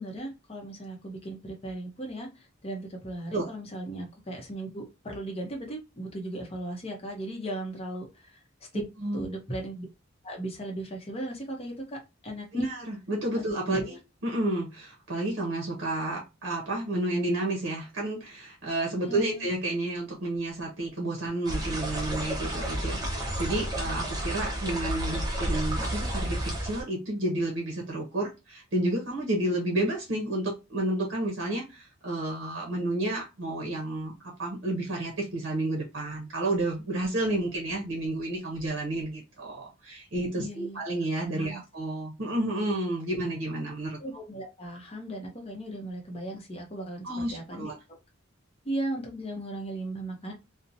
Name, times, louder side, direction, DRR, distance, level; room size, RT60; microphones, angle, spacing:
voice 1, 0.0-8.4 8.7-8.8 9.1-9.9 10.2-12.7 13.7-14.0 19.1-19.4 40.4-40.8 41.3-41.6 44.0-47.7 48.6-50.3, right 1 dB, 30° left, 0.7 m, -37 dB
voice 2, 8.7-9.2 12.5-14.0 14.2-44.0 47.0-47.7, right 1 dB, 65° right, 0.7 m, -31 dB
sound 1, 21.5-26.8, right 1 dB, 20° right, 0.6 m, -31 dB
2.8 x 2.1 x 2.6 m
head